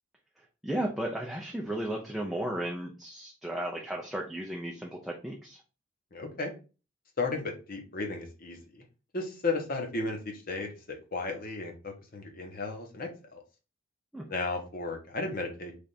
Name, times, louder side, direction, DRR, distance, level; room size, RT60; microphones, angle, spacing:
voice 1, 0.6-5.6 14.1-14.3, right 1 dB, ahead, -1 dB, 0.4 m, -34 dB
voice 2, 6.1-6.5 7.2-8.8 9.1-13.4 14.3-15.7, left 3 dB, 45° left, 3 dB, 0.9 m, -34 dB
3.3 x 2.4 x 4.0 m, 0.33 s
head